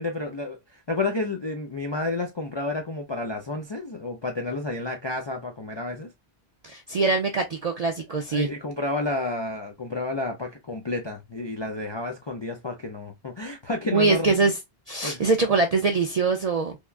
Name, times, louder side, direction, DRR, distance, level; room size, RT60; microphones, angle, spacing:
voice 1, 0.0-6.1 8.3-14.3 15.0-15.2, left 2 dB, 45° left, 0.3 m, -30 dB
voice 2, 6.6-8.5 13.9-14.6 14.9-16.8, right 4 dB, 60° right, 0.4 m, -23 dB
3.5 x 2.2 x 2.3 m
omnidirectional pair, 1.1 m